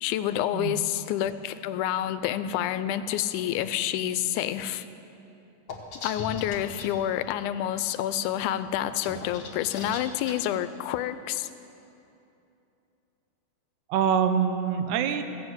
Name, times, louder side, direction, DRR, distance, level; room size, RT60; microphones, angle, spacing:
voice 1, 0.0-4.9 6.0-11.5, left 11 dB, 90° left, 13 dB, 2.0 m, -28 dB
voice 2, 0.5-0.8 13.9-15.2, right 7 dB, 80° right, 8 dB, 2.1 m, -25 dB
sound 1, 5.7-6.9 8.8-10.4, left 3 dB, 50° left, 1.6 m, -38 dB
16.0 x 7.4 x 7.9 m, 2.8 s
omnidirectional pair, 3.5 m